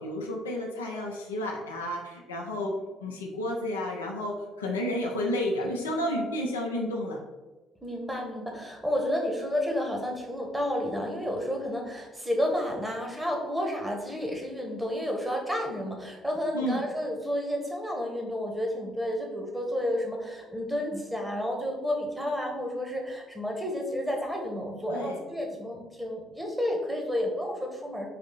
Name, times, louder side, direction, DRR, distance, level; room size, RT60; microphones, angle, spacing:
voice 1, 0.0-7.2 16.5-16.8 24.9-25.2, left 1 dB, 85° left, 0 dB, 0.6 m, -31 dB
voice 2, 7.8-28.1, equal, 10° right, 1 dB, 1.1 m, -31 dB
4.2 x 2.7 x 3.8 m, 1.2 s
figure-of-eight pair, 50°, 0 cm